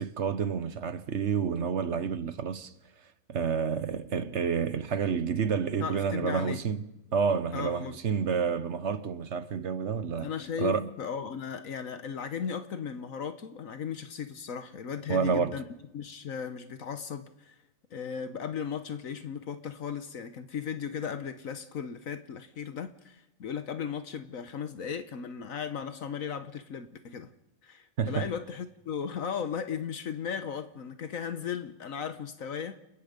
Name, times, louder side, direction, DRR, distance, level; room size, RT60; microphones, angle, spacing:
voice 1, 0.0-2.7 3.3-6.8 7.1-10.3 10.6-10.9 15.1-15.5 28.0-28.3, right 6 dB, 55° right, 1.2 m, -29 dB
voice 2, 5.8-6.6 7.5-8.0 10.2-15.6 15.9-17.6 17.9-27.3 27.6-32.8, left 7 dB, 75° left, 1.5 m, -36 dB
29.5 x 17.5 x 5.2 m
omnidirectional pair, 1.4 m